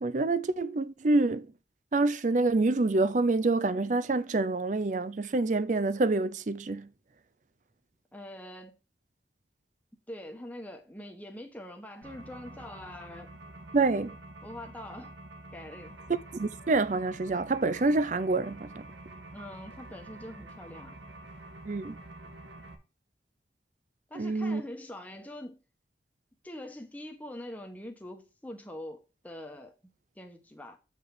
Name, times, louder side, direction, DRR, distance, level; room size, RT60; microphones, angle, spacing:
voice 1, 0.0-1.5 1.9-6.9 13.7-14.2 16.3-18.9 21.7-22.0 24.1-24.6, right 3 dB, 40° right, 0.5 m, -27 dB
voice 2, 8.1-8.8 10.1-13.4 14.4-15.1 15.5-16.0 19.3-21.0 24.1-25.6 26.4-30.8, left 1 dB, 10° left, 1.0 m, -44 dB
sound 1, 12.0-22.7, right 2 dB, 85° right, 1.5 m, -48 dB
7.8 x 5.2 x 4.7 m
head